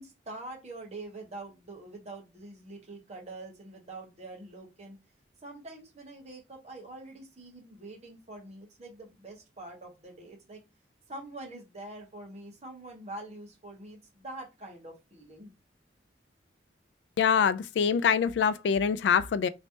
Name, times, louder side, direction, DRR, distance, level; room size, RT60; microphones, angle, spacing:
voice 1, 0.0-5.0 5.4-10.6 11.1-15.5, right 2 dB, 40° right, 1.3 m, -45 dB
voice 2, 17.2-19.5, left 7 dB, 70° left, 0.3 m, -24 dB
3.1 x 3.1 x 2.7 m
head